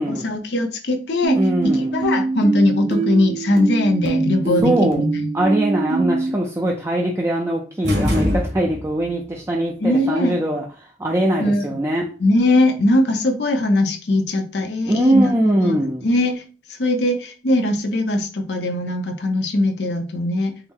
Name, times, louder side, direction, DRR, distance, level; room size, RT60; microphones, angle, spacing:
voice 1, 0.0-1.4 1.7-5.3 9.8-10.3 11.4-11.7 12.2-16.4 16.8-20.5, left 1 dB, 70° left, 0.7 m, -20 dB
sound 1, 1.2-6.3, right 4 dB, 35° right, 0.9 m, -24 dB
voice 2, 1.4-1.9 4.6-5.0 5.3-12.1 14.9-16.1, right 1 dB, 15° right, 0.4 m, -21 dB
sound 2, 7.8-9.1, left 1 dB, 75° right, 1.3 m, -22 dB
4.5 x 2.1 x 3.6 m
head